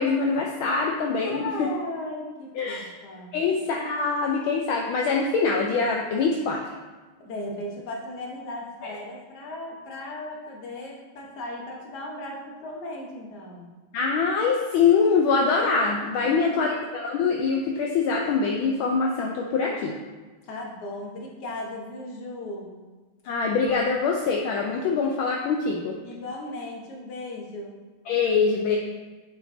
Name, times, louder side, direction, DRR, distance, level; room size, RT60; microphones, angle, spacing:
voice 1, 0.0-1.7 2.6-2.9 3.3-6.6 8.8-9.0 13.9-16.7 16.9-19.9 23.2-25.9 28.1-28.8, left 5 dB, 75° left, 0 dB, 1.3 m, -24 dB
voice 2, 1.2-3.4 7.2-13.7 16.2-16.7 20.5-22.8 26.0-27.8, left 1 dB, 55° left, -1 dB, 1.5 m, -36 dB
7.9 x 5.1 x 2.6 m, 1.3 s
omnidirectional pair, 2.4 m